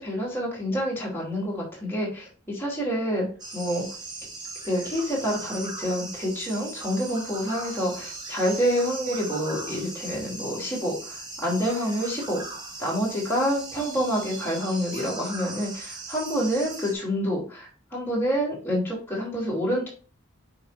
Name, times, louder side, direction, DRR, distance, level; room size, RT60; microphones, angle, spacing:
voice 1, 0.0-3.3 3.5-3.9 4.6-12.4 12.8-19.9, equal, 10° left, -5 dB, 3.0 m, -27 dB
sound 1, 3.4-16.9, right 2 dB, 20° right, 1.1 m, -38 dB
6.8 x 5.7 x 2.6 m, 0.39 s
head